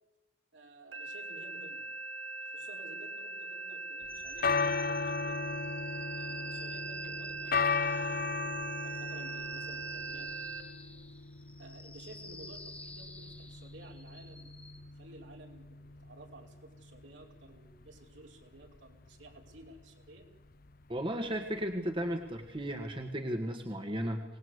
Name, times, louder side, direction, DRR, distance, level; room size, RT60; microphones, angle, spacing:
voice 1, 0.5-1.8 2.4-5.6 6.1-10.5 11.6-20.3, right 2 dB, 75° right, 1 dB, 5.1 m, -54 dB
sound 1, 0.9-10.6, right 4 dB, 90° right, 4.0 m, -41 dB
sound 2, 4.1-23.1, left 4 dB, 50° left, 0.7 m, -37 dB
sound 3, 4.1-14.8, left 2 dB, 5° left, 1.7 m, -51 dB
voice 2, 20.9-24.2, equal, 25° right, 5 dB, 1.7 m, -35 dB
25.5 x 19.5 x 8.1 m, 0.98 s
head